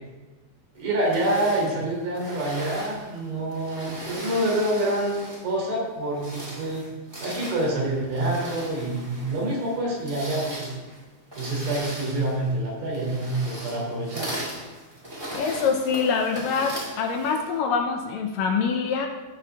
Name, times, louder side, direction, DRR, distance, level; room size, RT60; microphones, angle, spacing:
voice 1, 0.8-6.9 7.2-10.8 11.3-14.3, right 1 dB, 70° right, -4 dB, 4.9 m, -27 dB
sound 1, 1.0-5.6 6.0-17.6, right 1 dB, 10° right, 1.4 m, -38 dB
voice 2, 15.3-19.1, left 5 dB, 75° left, 4 dB, 2.3 m, -25 dB
16.0 x 6.4 x 3.5 m, 1.2 s
omnidirectional pair, 4.4 m